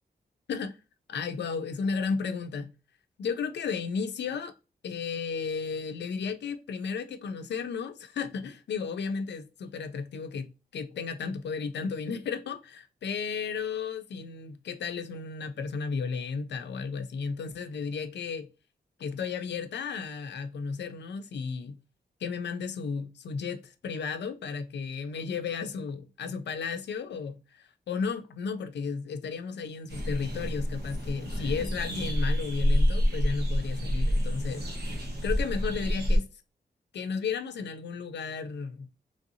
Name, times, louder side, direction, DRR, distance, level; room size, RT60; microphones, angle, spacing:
voice 1, 1.1-2.7 3.2-4.5 4.8-18.5 19.0-21.8 22.2-34.7 35.2-36.3 36.9-38.9, left 5 dB, 75° left, 0.4 m, -34 dB
sound 1, 29.9-36.2, equal, 70° right, 1.2 m, -28 dB
3.1 x 2.7 x 2.6 m
wide cardioid pair, 100°, 18 cm